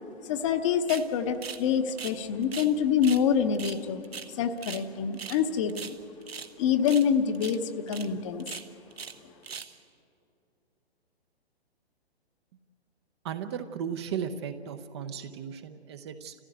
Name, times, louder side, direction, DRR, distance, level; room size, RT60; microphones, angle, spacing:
voice 1, 0.2-4.0 4.3-6.0 6.6-8.5, left 7 dB, 30° left, 8 dB, 0.9 m, -26 dB
sound 1, 0.9-1.1 1.4-2.7 3.0-3.2 3.5-4.9 5.1-5.4 5.7-6.5 6.8-7.1 7.3-7.6 7.9-8.1 8.4-9.2 9.4-9.8, right 6 dB, 65° right, 1.2 m, -40 dB
voice 2, 13.2-16.3, right 8 dB, 25° right, 9 dB, 0.7 m, -36 dB
30.0 x 15.5 x 8.0 m, 2.7 s
figure-of-eight pair, 125°, 32 cm